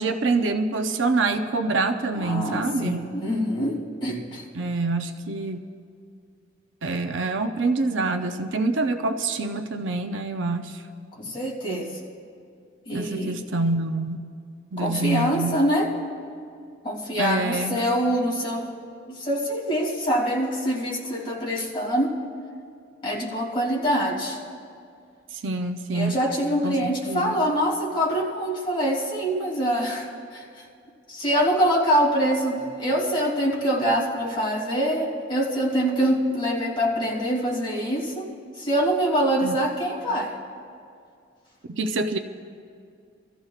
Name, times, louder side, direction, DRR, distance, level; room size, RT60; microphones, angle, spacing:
voice 1, 0.0-3.1 4.5-5.6 6.8-10.8 12.9-14.2 14.7-15.6 17.2-17.8 25.3-26.2 26.6-27.4 39.4-39.6 41.7-42.2, right 3 dB, 70° right, 6 dB, 0.6 m, -26 dB
voice 2, 2.1-4.4 11.1-12.0 12.9-13.4 14.8-15.9 16.8-18.7 19.1-22.1 23.0-24.4 25.9-30.6 31.1-40.4, equal, 25° left, -5 dB, 2.7 m, -25 dB
25.5 x 14.5 x 2.4 m, 2.3 s
head